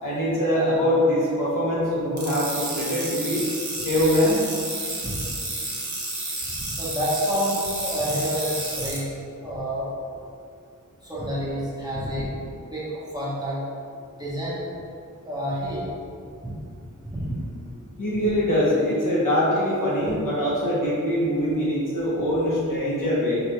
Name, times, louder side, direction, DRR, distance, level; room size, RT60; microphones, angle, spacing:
voice 1, 0.0-3.4 3.8-4.4 18.0-23.4, equal, 75° left, -7 dB, 1.1 m, -23 dB
sound 1, 2.2-9.0, right 2 dB, 60° right, 0.9 m, -31 dB
voice 2, 6.6-9.0 9.4-9.9 11.0-12.3 12.7-12.8 13.1-13.6 14.1-14.6 15.2-15.9 16.4-16.6 17.0-17.4, equal, 10° right, -10 dB, 1.2 m, -28 dB
4.7 x 2.6 x 3.1 m, 2.4 s
wide cardioid pair, 85°, 32 cm